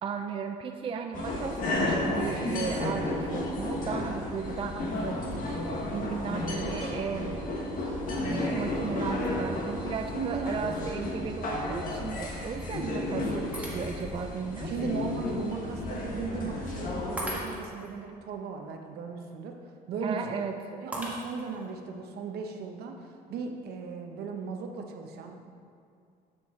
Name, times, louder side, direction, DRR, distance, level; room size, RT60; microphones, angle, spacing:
voice 1, 0.0-7.4 8.2-14.7 20.0-20.5, right 6 dB, 30° right, 5 dB, 0.4 m, -35 dB
sound 1, 1.1-17.4, left 2 dB, 55° left, 1.3 m, -32 dB
voice 2, 10.1-10.5 14.6-20.4 20.7-25.5, right 4 dB, 70° right, 4 dB, 0.9 m, -37 dB
Shatter, 13.5-14.2 14.8-14.9 17.2-17.9 20.9-21.7, right 1 dB, 10° right, 1.5 m, -38 dB
7.1 x 7.0 x 3.7 m, 2.4 s
cardioid pair, 110°, 17 cm